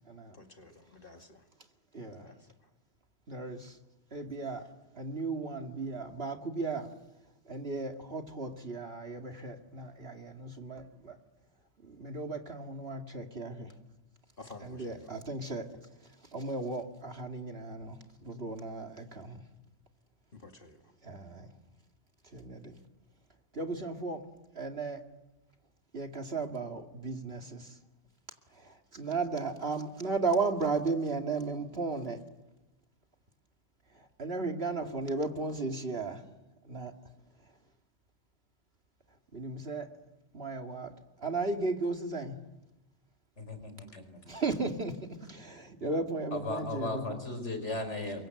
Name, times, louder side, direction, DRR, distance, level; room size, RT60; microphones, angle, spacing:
voice 1, 0.3-1.4 2.2-2.4 14.4-15.1 20.3-20.9, left 3 dB, 45° left, 4 dB, 2.5 m, -51 dB
voice 2, 1.9-2.3 3.3-3.8 4.1-4.6 4.9-6.9 7.4-11.2 11.8-13.7 14.6-15.7 16.0-19.4 21.0-21.5 22.2-22.7 23.5-24.3 24.5-25.0 25.9-27.8 28.5-32.2 33.9-36.2 36.6-36.9 39.3-39.9 40.3-40.9 41.2-42.4 44.2-47.2, right 3 dB, 55° right, 4 dB, 2.6 m, -35 dB
voice 3, 43.4-44.0 46.3-48.3, left 2 dB, 75° left, 7 dB, 5.3 m, -36 dB
29.5 x 23.5 x 7.9 m, 0.96 s
omnidirectional pair, 1.2 m